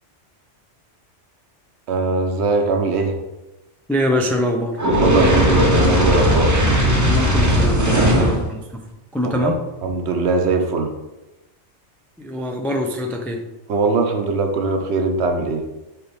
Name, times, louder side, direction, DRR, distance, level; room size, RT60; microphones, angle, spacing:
voice 1, 1.9-3.2 5.0-6.5 7.9-8.2 9.2-9.5 9.8-10.9 13.7-15.6, right 3 dB, 65° right, 4 dB, 1.0 m, -21 dB
voice 2, 3.9-4.8 7.0-8.9 9.1-9.6 12.2-13.4, left 1 dB, 5° left, 2 dB, 0.3 m, -23 dB
Fire, 4.8-8.4, equal, 15° right, 0.8 m, -17 dB
4.6 x 4.1 x 5.1 m, 1.0 s
omnidirectional pair, 1.2 m